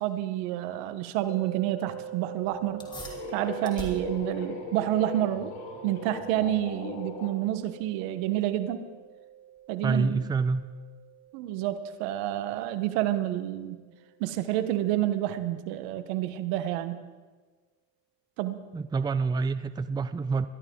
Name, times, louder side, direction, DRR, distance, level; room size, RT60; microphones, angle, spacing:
voice 1, 0.0-2.8 3.3-5.6 5.8-8.9 9.7-10.2 11.3-13.8 14.2-17.0 18.4-18.6, right 13 dB, 75° right, 11 dB, 1.3 m, -29 dB
sound 1, 1.3-14.4, right 11 dB, 45° right, 3.8 m, -46 dB
sound 2, 2.4-7.3, left 4 dB, 75° left, 4.3 m, -39 dB
sound 3, 2.8-12.7, equal, 15° left, 2.9 m, -50 dB
voice 2, 9.8-10.6 18.7-20.5, right 4 dB, 15° right, 13 dB, 0.5 m, -27 dB
22.0 x 13.5 x 3.9 m, 1.4 s
supercardioid pair, 105°, 32 cm